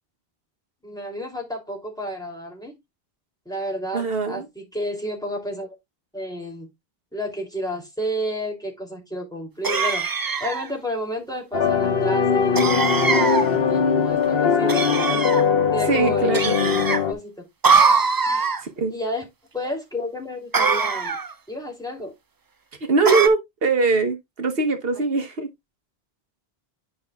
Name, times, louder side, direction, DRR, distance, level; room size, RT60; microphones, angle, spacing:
voice 1, 0.8-2.7 3.4-5.7 6.1-6.7 7.1-10.1 10.4-15.3 15.7-16.3 16.6-17.5 18.3-18.4 18.9-19.3 19.5-21.2 21.5-22.1 23.2-23.3, equal, 5° left, 2.8 m, -31 dB
voice 2, 3.9-4.5 15.9-16.6 18.3-18.9 22.8-25.5, right 4 dB, 65° right, 1.2 m, -22 dB
sound 1, 9.6-10.7 12.6-13.5 14.7-15.4 16.3-17.0 17.6-18.6 20.5-21.3 23.1-23.3, right 4 dB, 35° right, 0.3 m, -21 dB
sound 2, 11.5-17.1, left 6 dB, 65° left, 1.2 m, -21 dB
10.0 x 5.5 x 2.3 m
omnidirectional pair, 1.1 m